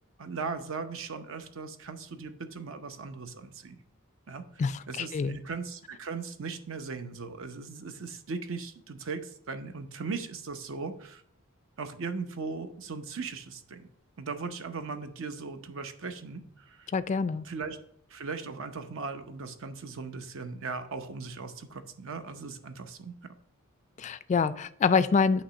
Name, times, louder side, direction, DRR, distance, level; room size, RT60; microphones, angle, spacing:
voice 1, 0.2-3.8 4.3-11.2 11.8-13.9 14.2-16.9 17.4-17.8 18.1-23.1, right 4 dB, 65° right, 8 dB, 0.7 m, -38 dB
voice 2, 4.6-5.4 16.9-17.5 24.0-25.4, left 5 dB, 35° left, 14 dB, 0.3 m, -26 dB
8.5 x 3.0 x 6.2 m, 0.67 s
head